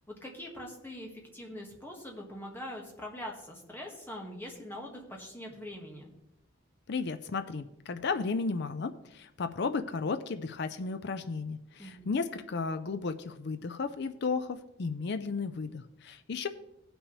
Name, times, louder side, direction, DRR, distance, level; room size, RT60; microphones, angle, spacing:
voice 1, 0.1-6.1 11.8-12.1, left 1 dB, 10° left, 0 dB, 1.5 m, -43 dB
voice 2, 6.9-16.5, left 4 dB, 55° left, 10 dB, 0.5 m, -34 dB
17.0 x 6.1 x 3.3 m, 0.86 s
head